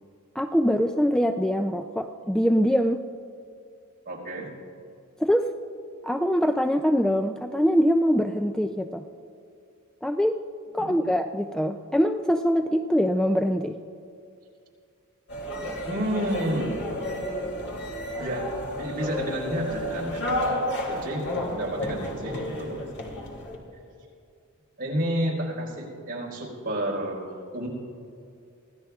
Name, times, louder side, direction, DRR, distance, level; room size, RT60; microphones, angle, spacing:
voice 1, 0.4-3.1 5.2-5.5 6.0-9.1 10.0-10.4 10.7-13.8 15.6-15.8, equal, 5° left, 6 dB, 0.3 m, -23 dB
voice 2, 4.0-4.5 10.8-11.1 15.9-16.8 18.2-18.5 18.8-20.5 20.9-21.3 21.5-22.9 24.8-27.2 27.5-27.7, right 1 dB, 45° right, -3 dB, 4.4 m, -30 dB
sound 1, 15.3-23.6, left 1 dB, 55° left, 2.7 m, -31 dB
25.5 x 16.0 x 2.4 m, 2.5 s
head